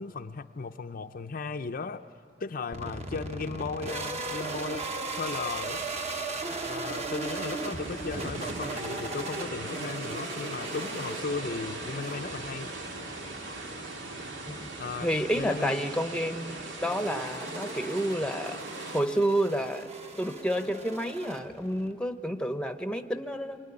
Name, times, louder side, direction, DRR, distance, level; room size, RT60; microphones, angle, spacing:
voice 1, 0.0-2.1 2.4-5.9 6.7-12.7 14.8-15.1 15.3-15.8, left 4 dB, 50° left, 7 dB, 0.6 m, -36 dB
sound 1, 2.7-21.9, right 3 dB, 35° right, 1.3 m, -38 dB
sound 2, 7.2-19.0, right 2 dB, 90° right, 2.4 m, -39 dB
voice 2, 15.0-18.6 18.9-19.9 20.2-23.6, equal, 5° left, 8 dB, 0.9 m, -30 dB
26.0 x 23.0 x 9.8 m, 2.4 s
head